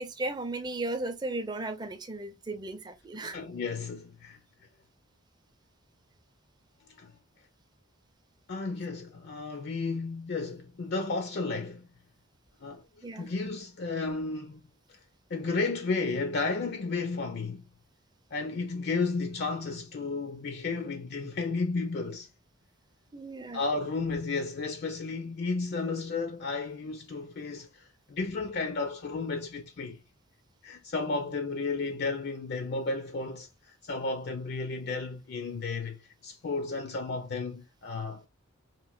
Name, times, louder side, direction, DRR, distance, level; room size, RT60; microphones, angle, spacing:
voice 1, 0.0-3.4 13.0-13.3 23.1-23.6, right 2 dB, 20° right, 0.5 m, -35 dB
voice 2, 3.2-4.4 7.0-7.1 8.5-11.9 12.6-12.8 13.1-14.6 15.3-17.6 18.3-22.3 23.5-30.0 30.6-38.3, left 3 dB, 50° left, 0.4 m, -33 dB
3.0 x 2.8 x 2.3 m
head